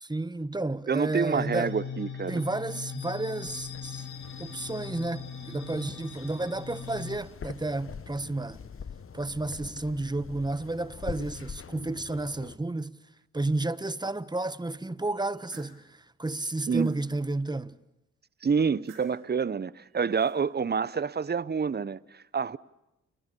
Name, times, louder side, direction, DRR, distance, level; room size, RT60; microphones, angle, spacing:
voice 1, 0.0-1.7 2.3-4.1 4.4-8.6 9.1-12.9 13.3-17.8, right 2 dB, 10° right, 1.2 m, -32 dB
voice 2, 0.9-2.4 16.7-17.0 18.4-22.6, right 6 dB, 30° right, 0.9 m, -28 dB
sound 1, 1.3-7.2, left 6 dB, 55° left, 7.6 m, -40 dB
sound 2, 3.4-12.6, left 6 dB, 40° left, 1.1 m, -44 dB
sound 3, 15.1-15.8 16.4-17.0 18.6-19.3 19.9-20.4, right 6 dB, 90° right, 3.7 m, -55 dB
29.5 x 24.0 x 6.9 m
hypercardioid pair, 40°, 34 cm